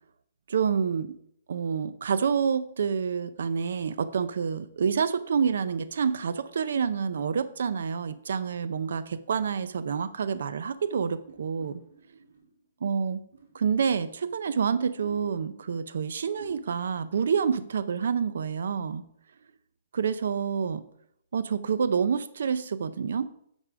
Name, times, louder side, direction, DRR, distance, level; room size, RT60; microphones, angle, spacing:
voice 1, 0.5-1.1 1.5-11.8 12.8-13.2 13.5-19.0 19.9-20.8 21.3-23.3, right 6 dB, 65° right, 15 dB, 0.5 m, -28 dB
sound 1, 10.9-12.7 13.3-14.4 15.0-15.6 16.1-16.2 16.4-17.0 17.4-17.7, right 4 dB, 80° right, 2.3 m, -52 dB
8.9 x 4.8 x 4.9 m, 0.72 s
hypercardioid pair, 175°, 0 cm